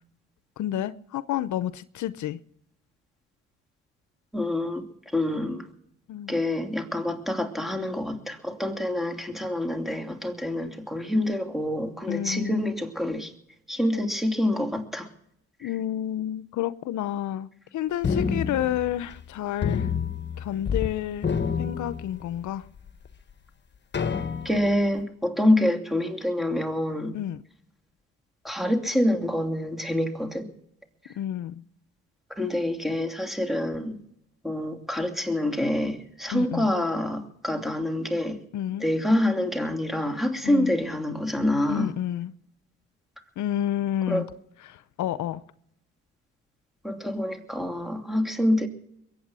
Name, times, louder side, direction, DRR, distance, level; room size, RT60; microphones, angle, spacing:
voice 1, 0.6-2.4 6.1-6.4 12.1-12.7 15.6-19.9 20.4-22.7 27.1-27.4 31.2-31.7 36.3-36.7 38.5-38.9 40.4-40.7 41.7-42.3 43.4-44.2 44.7-45.4, left 11 dB, 75° left, 0.7 m, -30 dB
voice 2, 4.3-4.9 5.1-5.7 6.3-13.3 13.7-15.1 15.6-15.7 24.4-27.1 28.4-30.5 32.4-34.0 34.4-38.4 38.8-41.9 44.1-44.3 46.8-48.7, left 1 dB, ahead, 2.8 m, -26 dB
sound 1, 18.0-19.3 19.6-20.9 21.2-22.5 23.1-23.2 23.9-24.8, left 6 dB, 35° left, 1.4 m, -28 dB
22.5 x 8.9 x 6.2 m
cardioid pair, 90°, 30 cm